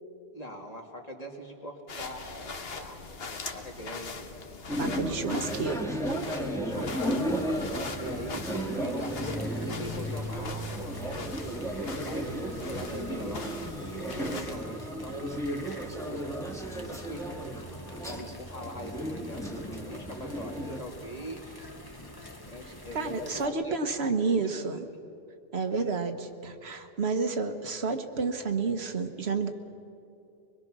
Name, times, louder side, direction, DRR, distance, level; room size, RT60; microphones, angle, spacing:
voice 1, 0.3-4.4 5.2-5.5 6.3-7.4 8.0-11.5 12.0-15.6 16.1-16.4 16.9-17.3 18.1-19.4 19.7-21.6 22.4-23.8 24.3-24.4 25.7-25.9, equal, 35° left, 0 dB, 2.3 m, -42 dB
sound 1, 1.9-14.6, left 4 dB, 65° left, 1.4 m, -42 dB
sound 2, 4.7-20.8, equal, 5° left, 1.5 m, -34 dB
voice 2, 4.8-5.9 22.9-24.8 25.5-29.5, right 4 dB, 75° right, 6 dB, 1.4 m, -30 dB
sound 3, 6.7-23.5, left 1 dB, 20° left, 1.4 m, -46 dB
24.0 x 21.5 x 6.1 m, 2.7 s
omnidirectional pair, 1.1 m